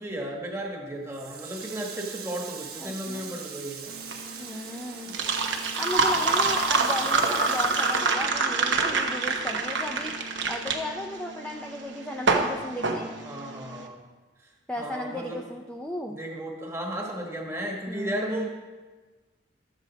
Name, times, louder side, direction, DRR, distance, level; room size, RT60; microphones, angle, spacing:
voice 1, 0.0-3.9 6.1-6.3 13.2-14.0 14.8-15.4 16.1-18.5, right 1 dB, 15° right, 0 dB, 1.3 m, -34 dB
Water tap faucet, 1.1-9.0 9.3-10.6, right 7 dB, 50° right, 1.2 m, -42 dB
voice 2, 2.8-3.4 4.4-5.2 5.8-13.1 14.7-16.2 17.9-18.5, left 1 dB, 5° left, 0 dB, 0.4 m, -35 dB
sound 1, 3.9-13.8, right 3 dB, 75° right, 1.0 m, -26 dB
12.5 x 7.4 x 4.0 m, 1.3 s
head